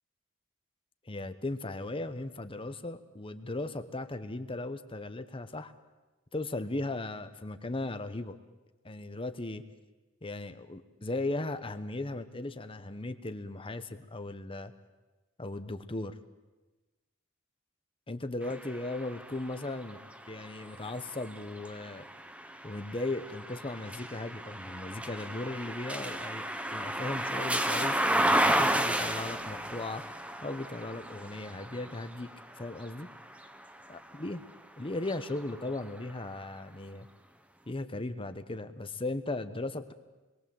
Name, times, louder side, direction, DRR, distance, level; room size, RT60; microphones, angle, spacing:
voice 1, 1.0-5.7 6.3-8.4 8.8-9.6 10.2-14.7 15.4-16.2 18.1-20.0 20.3-22.1 22.6-32.3 32.6-33.1 33.9-34.4 34.8-37.1 37.7-39.9, left 2 dB, 25° left, 10 dB, 1.0 m, -37 dB
sound 1, 18.4-34.4 34.9-36.1, right 1 dB, 5° right, 1.1 m, -33 dB
28.0 x 22.0 x 7.8 m, 1.2 s
head